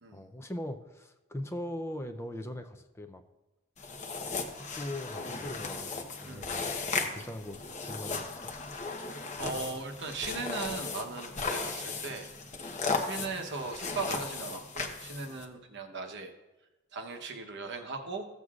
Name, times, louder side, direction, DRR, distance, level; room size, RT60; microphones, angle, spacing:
voice 1, 0.1-3.2 4.6-6.7 7.0-8.5, left 1 dB, 15° left, 7 dB, 0.5 m, -40 dB
sound 1, 3.8-15.4, left 4 dB, 35° left, 0.9 m, -36 dB
voice 2, 9.0-12.3 12.9-16.3 16.9-18.3, right 3 dB, 60° right, 4 dB, 1.0 m, -38 dB
15.0 x 7.8 x 2.4 m, 1.1 s
head